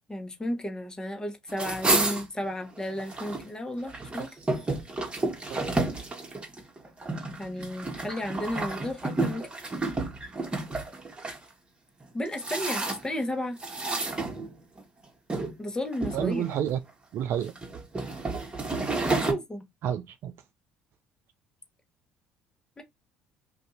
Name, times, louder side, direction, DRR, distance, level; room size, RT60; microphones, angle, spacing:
voice 1, 0.1-4.3 7.4-9.5 12.1-13.6 15.6-16.4 19.0-19.6 22.8-22.9, left 1 dB, 15° left, 1.0 m, -33 dB
sound 1, 1.5-3.4 3.8-11.4 12.0-13.2 13.6-14.8 15.3-15.5 15.9-16.7 17.3-19.3, right 2 dB, 20° right, 1.2 m, -31 dB
voice 2, 16.1-16.8 17.1-17.5 19.8-20.3, right 9 dB, 60° right, 0.4 m, -29 dB
2.6 x 2.4 x 4.0 m
hypercardioid pair, 70°, 5 cm